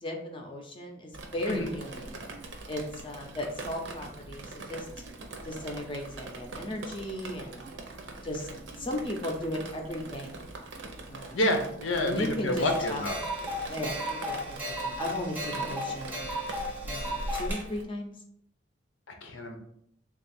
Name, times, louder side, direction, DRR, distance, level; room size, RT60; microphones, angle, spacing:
voice 1, 0.0-2.2 2.7-4.9 5.4-7.7 8.2-8.5 8.8-10.3 11.1-11.4 12.0-13.1 13.7-16.3 16.8-18.1, left 1 dB, 25° left, 2 dB, 0.5 m, -36 dB
Drip, 1.1-17.8, right 2 dB, 75° right, 0.6 m, -42 dB
voice 2, 11.3-13.2 19.2-19.6, left 1 dB, 90° left, 4 dB, 0.7 m, -28 dB
sound 1, 12.6-17.6, equal, 10° right, 0.7 m, -35 dB
3.4 x 2.4 x 4.1 m, 0.70 s
head